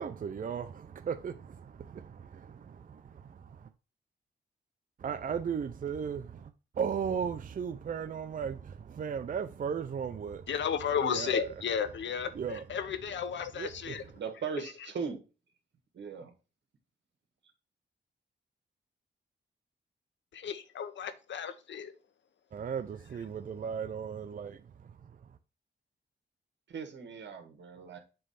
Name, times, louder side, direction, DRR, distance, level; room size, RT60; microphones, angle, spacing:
voice 1, 0.0-3.7 5.0-10.5 11.0-11.5 12.3-12.6 13.6-14.1 22.5-25.4, right 7 dB, 45° right, 0.5 m, -36 dB
voice 2, 10.5-14.0 14.6-14.7 20.3-21.9, left 7 dB, 80° left, 0.8 m, -33 dB
voice 3, 14.2-15.2 15.9-16.3 26.7-28.0, right 6 dB, 75° right, 1.8 m, -39 dB
7.7 x 3.3 x 5.6 m
cardioid pair, 90°, 19 cm